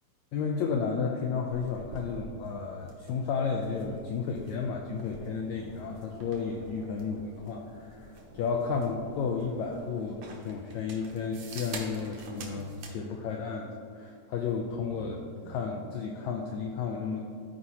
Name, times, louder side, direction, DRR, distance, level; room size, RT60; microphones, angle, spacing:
voice 1, 0.3-17.2, left 5 dB, 90° left, 1 dB, 1.6 m, -33 dB
sound 1, 1.5-13.0, right 2 dB, 65° right, 1.5 m, -47 dB
13.5 x 4.8 x 2.8 m, 2.3 s
omnidirectional pair, 3.9 m